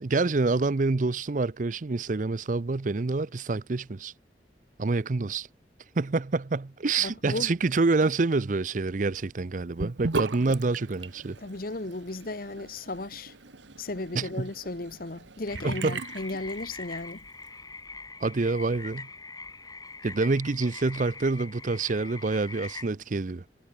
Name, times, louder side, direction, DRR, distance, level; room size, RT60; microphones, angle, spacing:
voice 1, 0.0-4.1 4.8-5.5 6.0-11.4 14.1-14.5 15.6-16.0 18.2-19.1 20.0-23.4, right 3 dB, 45° right, 0.6 m, -27 dB
voice 2, 7.0-7.5 11.4-13.3 13.8-17.2, left 2 dB, 50° left, 1.2 m, -35 dB
Sink (filling or washing) / Bathtub (filling or washing), 9.8-17.1, right 3 dB, 80° right, 1.2 m, -38 dB
sound 1, 15.5-22.9, left 3 dB, 20° left, 4.7 m, -43 dB
head